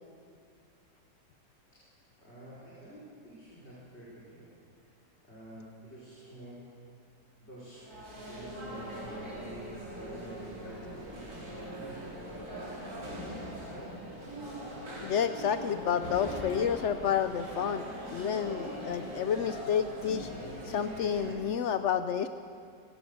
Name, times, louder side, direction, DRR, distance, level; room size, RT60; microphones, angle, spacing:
voice 1, 2.2-4.5 5.2-6.7 7.4-7.9 8.3-12.5 12.9-14.4, right 1 dB, 35° left, -8 dB, 5.4 m, -48 dB
sound 1, 7.7-21.3, equal, 55° right, 5.3 m, -41 dB
voice 2, 15.0-17.9 18.1-20.3 20.6-22.3, left 8 dB, 70° left, 10 dB, 0.7 m, -30 dB
25.5 x 16.5 x 6.9 m, 2.3 s
omnidirectional pair, 1.9 m